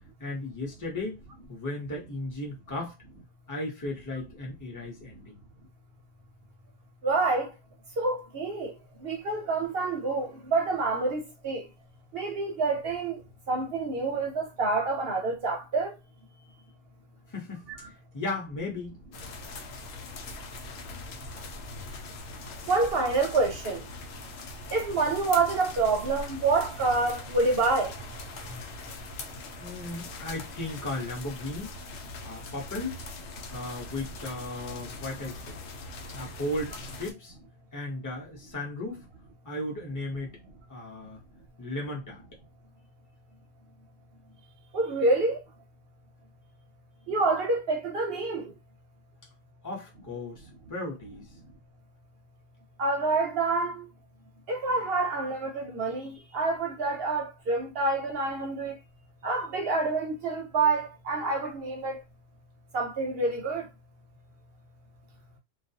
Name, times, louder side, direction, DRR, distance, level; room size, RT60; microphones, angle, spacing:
voice 1, 0.2-1.2 1.5-3.0 3.5-5.4 17.3-19.0 29.6-31.7 32.2-33.0 33.5-35.6 36.1-37.3 37.7-39.0 39.4-40.3 40.7-41.2 41.6-42.2 49.6-51.3, left 2 dB, 20° left, 0.7 m, -36 dB
voice 2, 7.0-7.5 8.0-8.7 9.0-11.6 12.1-13.2 13.5-15.9 17.8-17.9 22.7-23.8 24.7-27.9 44.7-45.4 47.1-48.5 52.8-53.8 54.5-58.7 59.2-62.0 62.7-63.7, right 3 dB, 60° right, 0.7 m, -27 dB
sound 1, 19.1-37.1, left 2 dB, 85° left, 1.0 m, -41 dB
2.3 x 2.2 x 2.7 m
omnidirectional pair, 1.3 m